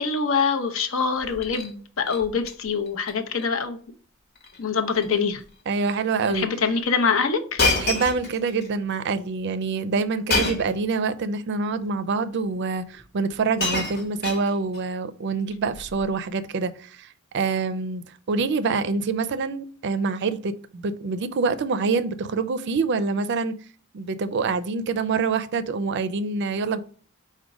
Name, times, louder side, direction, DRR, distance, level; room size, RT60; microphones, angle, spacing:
voice 1, 0.0-3.8 4.6-5.4 6.3-7.6, left 5 dB, 70° left, 0.7 m, -24 dB
Shatter, 1.2-1.7 2.1-2.5 2.9-3.1 3.4-3.5 4.4-4.6 4.9-5.2 5.9-6.0 7.6-8.7 10.3-10.8 11.8-11.9 12.9-13.0 13.3-14.8 15.8-16.0, left 3 dB, 50° left, 1.0 m, -27 dB
voice 2, 5.7-6.5 7.8-23.5 23.9-26.8, right 4 dB, 55° right, 0.4 m, -26 dB
5.0 x 2.2 x 4.8 m
head